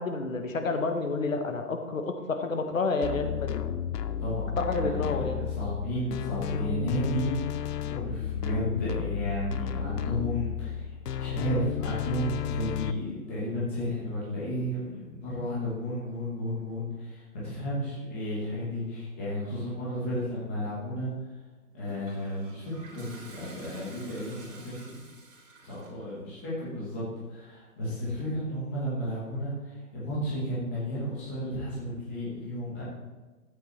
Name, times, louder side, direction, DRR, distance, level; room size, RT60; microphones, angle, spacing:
voice 1, 0.0-3.6 4.6-5.5, left 3 dB, 55° left, 6 dB, 1.1 m, -29 dB
sound 1, 3.0-12.9, left 10 dB, 85° left, 0.7 m, -33 dB
voice 2, 4.2-10.9 11.2-21.1 21.7-25.0 25.6-32.8, equal, 10° left, -8 dB, 1.0 m, -33 dB
Toilet flush, 21.8-26.1, right 3 dB, 55° right, 3.1 m, -50 dB
13.0 x 8.2 x 3.2 m, 1.3 s
hypercardioid pair, 175°, 47 cm